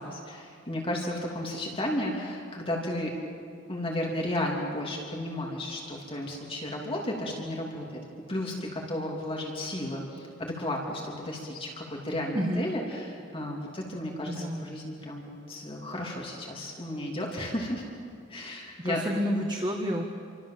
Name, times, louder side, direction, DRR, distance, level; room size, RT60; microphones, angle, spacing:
voice 1, 0.0-3.1 3.7-8.0 8.3-17.8 18.3-19.0, left 1 dB, 30° left, -1 dB, 3.2 m, -33 dB
voice 2, 12.3-12.7 14.3-14.7 18.8-20.0, equal, 25° right, 2 dB, 1.7 m, -29 dB
29.0 x 25.0 x 7.7 m, 2.4 s
head